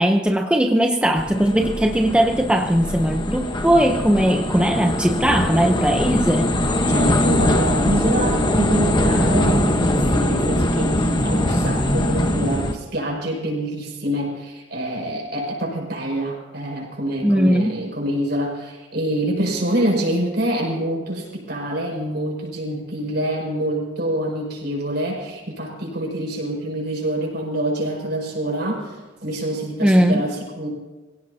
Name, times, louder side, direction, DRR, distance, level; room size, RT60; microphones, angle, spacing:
voice 1, 0.0-6.6 17.2-17.8 29.8-30.2, equal, 5° right, 3 dB, 0.7 m, -19 dB
sound 1, 1.2-12.7, left 1 dB, 25° left, 1.1 m, -21 dB
voice 2, 6.9-30.7, right 1 dB, 55° right, -1 dB, 6.0 m, -26 dB
25.0 x 16.5 x 2.8 m, 1.2 s
head